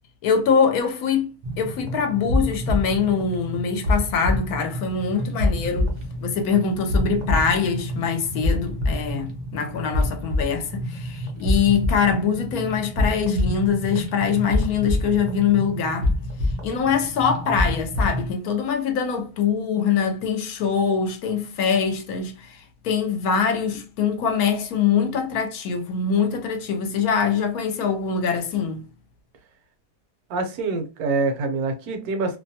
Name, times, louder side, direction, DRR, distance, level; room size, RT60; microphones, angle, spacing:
voice 1, 0.2-5.9 6.2-16.1 16.6-28.8, left 6 dB, 70° left, 1.1 m, -23 dB
sound 1, 1.4-18.3, left 1 dB, 55° right, 0.5 m, -27 dB
voice 2, 30.3-32.4, right 3 dB, 70° right, 1.1 m, -25 dB
2.8 x 2.1 x 2.7 m
omnidirectional pair, 1.7 m